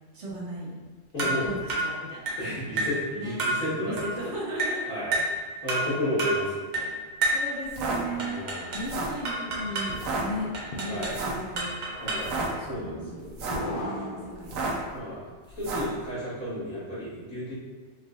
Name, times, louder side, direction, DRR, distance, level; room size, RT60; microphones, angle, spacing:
voice 1, 0.1-0.8 1.2-2.4 2.8-2.9 3.1-3.4 3.8-4.9 7.3-8.4 8.7-11.7 13.0-13.3 13.8-14.7, right 1 dB, 65° right, -5 dB, 1.2 m, -36 dB
voice 2, 1.1-1.5 2.4-4.3 4.9-5.2 5.6-7.2 8.1-8.8 10.9-11.1 12.0-13.3 13.8-14.0 14.9-15.3 15.6-17.5, equal, 85° left, -10 dB, 2.2 m, -33 dB
sound 1, 1.2-1.4 1.7-1.9 2.3-2.4 2.8-3.0 3.4-3.6 4.0-4.1 4.6-4.8 5.1-5.4 5.7-5.9 6.2-6.4 6.7-6.9 7.2-7.5 8.2-8.9 9.2-9.9 10.5-11.2 11.6-12.3, right 2 dB, 40° right, 0.9 m, -29 dB
sound 2, 7.6-8.0 8.7-9.2 9.9-10.2 11.1-11.4 12.1-12.5 13.2-13.7 14.4-14.9 15.6-15.9, right 3 dB, 90° right, 1.1 m, -31 dB
sound 3, 9.2-14.9, left 1 dB, 55° left, 0.6 m, -39 dB
4.6 x 3.3 x 2.5 m, 1.5 s
omnidirectional pair, 1.4 m